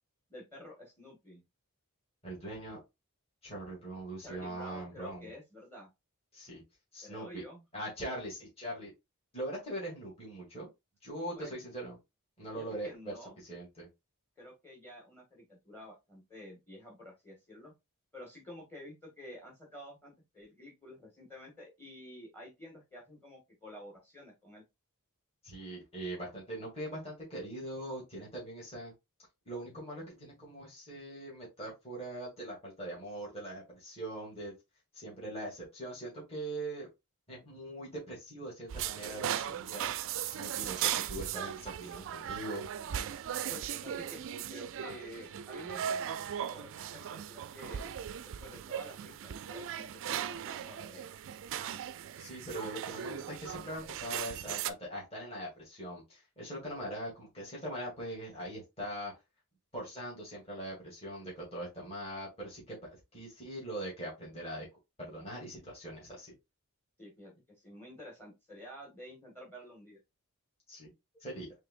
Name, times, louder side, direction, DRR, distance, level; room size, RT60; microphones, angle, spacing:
voice 1, 0.3-1.4 4.2-5.9 7.0-7.6 11.3-11.5 12.5-13.4 14.4-17.7 18.1-24.6 43.5-46.1 46.5-47.9 48.2-51.4 67.0-70.0, left 1 dB, 10° left, 0 dB, 1.7 m, -50 dB
voice 2, 2.2-2.8 3.4-5.3 6.3-6.6 6.9-7.4 7.7-8.9 9.3-10.7 11.0-12.0 12.4-13.9 25.4-28.9 29.5-34.5 34.9-36.9 37.3-39.9 40.2-42.7 52.2-59.1 59.7-62.8 63.1-64.7 65.0-66.3 70.7-70.9 71.2-71.5, right 1 dB, 25° left, -5 dB, 2.7 m, -41 dB
sound 1, 38.7-54.7, right 10 dB, 60° right, 0.4 m, -38 dB
5.5 x 3.4 x 2.5 m, 0.22 s
head